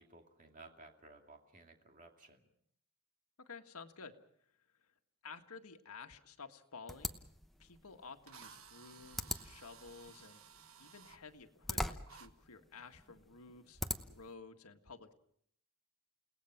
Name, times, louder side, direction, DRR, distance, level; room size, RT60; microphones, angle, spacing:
voice 1, 0.0-2.5, right 3 dB, 35° right, 3 dB, 2.5 m, -58 dB
voice 2, 3.4-4.2 4.8-4.9 5.2-7.2 7.6-10.4 10.8-13.8 14.1-15.1, left 4 dB, 85° left, 6 dB, 1.7 m, -53 dB
sound 1, 6.9-14.3, left 1 dB, ahead, 0.9 m, -44 dB
Drill, 7.6-7.7 8.3-11.2 12.1-12.3, right 7 dB, 70° right, 1.2 m, -57 dB
29.5 x 18.5 x 5.9 m, 0.67 s
head